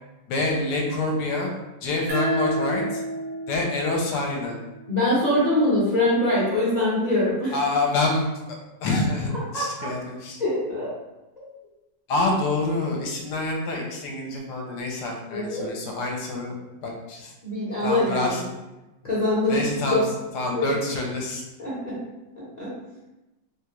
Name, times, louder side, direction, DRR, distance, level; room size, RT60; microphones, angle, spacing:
voice 1, 0.3-1.5 1.8-3.0 3.5-4.6 7.5-10.4 12.1-16.6 16.8-17.3 17.8-18.5 19.5-20.0 20.3-21.4, left 2 dB, 70° left, 0 dB, 1.2 m, -27 dB
sound 1, 2.1-5.3, right 1 dB, 55° right, 0.9 m, -30 dB
voice 2, 4.9-7.5 9.5-9.9 10.4-10.9 11.4-11.5 15.3-15.7 17.4-18.5 19.0-19.6 19.9-20.0 20.5-20.7 21.6-22.0 22.6-22.7, left 1 dB, 35° left, -9 dB, 0.7 m, -23 dB
3.2 x 2.4 x 2.9 m, 1.0 s
omnidirectional pair, 1.9 m